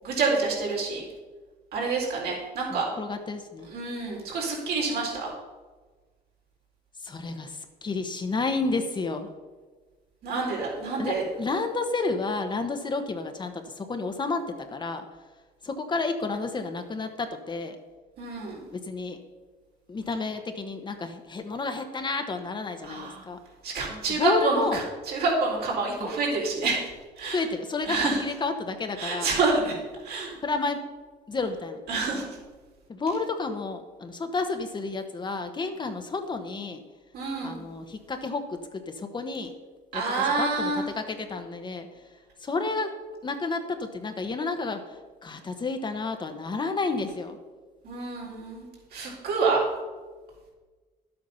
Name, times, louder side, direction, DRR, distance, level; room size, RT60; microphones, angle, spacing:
voice 1, 0.0-1.0 1.7-2.9 3.7-5.3 10.2-11.2 18.2-18.6 22.8-23.2 23.6-26.8 27.2-27.4 27.8-28.2 29.0-29.8 30.0-30.4 31.9-32.3 37.1-37.6 39.9-40.8 47.8-49.6, right 4 dB, 70° right, -3 dB, 4.0 m, -27 dB
voice 2, 2.7-3.7 7.0-9.3 11.0-14.4 14.7-15.0 15.6-17.8 18.7-19.2 19.9-23.4 24.2-24.8 26.0-26.1 27.3-29.3 30.4-30.8 31.3-31.8 32.9-36.8 37.4-39.5 39.9-40.7 41.0-41.9 42.4-42.9 43.2-47.4, left 3 dB, 25° left, 6 dB, 1.1 m, -31 dB
11.0 x 8.0 x 5.6 m, 1.4 s
cardioid pair, 110°, 17 cm